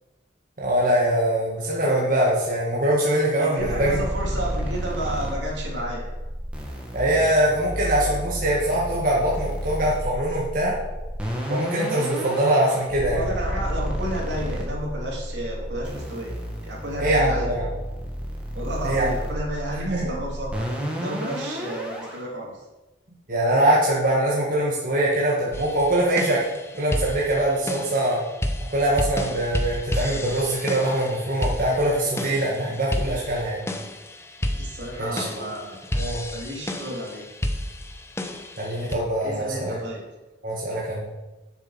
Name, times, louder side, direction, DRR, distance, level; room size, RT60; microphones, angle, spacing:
voice 1, 0.6-4.0 6.9-10.7 11.5-13.2 17.0-17.7 18.8-19.1 19.7-20.2 23.3-26.4 26.8-28.2 28.7-33.6 35.0-35.5 35.9-36.2 38.6-39.7 40.4-41.0, right 1 dB, 50° right, -5 dB, 1.7 m, -23 dB
voice 2, 3.4-6.0 13.0-16.4 16.6-17.5 18.5-22.6 34.4-35.8 36.3-37.3 39.2-40.0, equal, 80° right, -3 dB, 3.1 m, -32 dB
sound 1, 3.6-22.2, equal, 5° right, 1.9 m, -31 dB
sound 2, 25.5-38.9, left 1 dB, 15° left, 0.7 m, -31 dB
7.5 x 7.1 x 5.8 m, 1.1 s
head